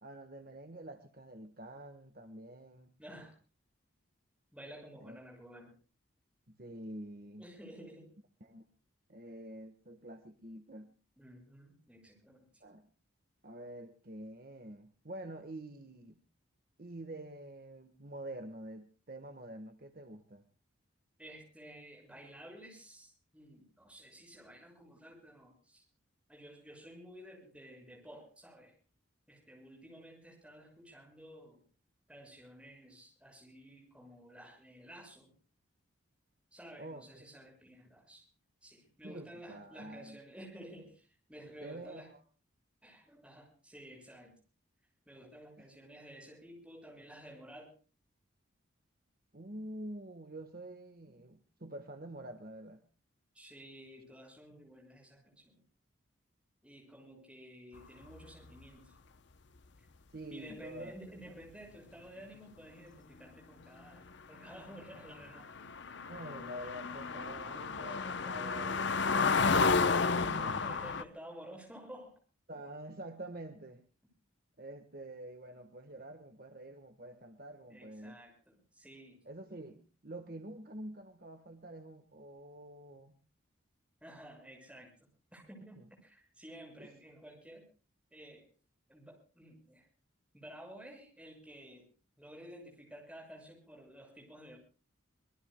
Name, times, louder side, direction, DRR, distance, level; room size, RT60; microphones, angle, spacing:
voice 1, 0.0-2.9 5.0-5.2 6.5-7.5 8.4-8.6 9.1-10.9 12.6-12.9 13.4-16.2 16.8-20.5 36.8-37.2 39.0-40.2 41.6-42.2 45.6-45.7 49.3-52.8 60.1-60.9 66.1-70.8 72.5-73.8 74.6-78.2 79.2-83.1 85.8-85.9 86.8-86.9, right 1 dB, 45° right, 7 dB, 1.3 m, -47 dB
voice 2, 3.0-3.4 4.5-5.7 7.4-8.1 11.2-12.6 21.2-25.8 26.3-28.8 29.3-31.6 32.1-35.3 36.5-38.3 38.6-42.1 42.8-44.4 45.1-47.7 53.3-55.6 56.6-59.0 60.3-65.5 67.8-68.0 70.1-72.2 77.7-79.2 84.0-85.0 85.3-87.7 88.1-88.5 88.9-89.9 90.3-91.9 92.2-94.6, equal, 5° right, 1 dB, 6.5 m, -52 dB
sound 1, 64.7-64.8 65.0-71.0, left 4 dB, 60° left, 0.7 m, -31 dB
25.5 x 21.5 x 2.2 m, 0.35 s
head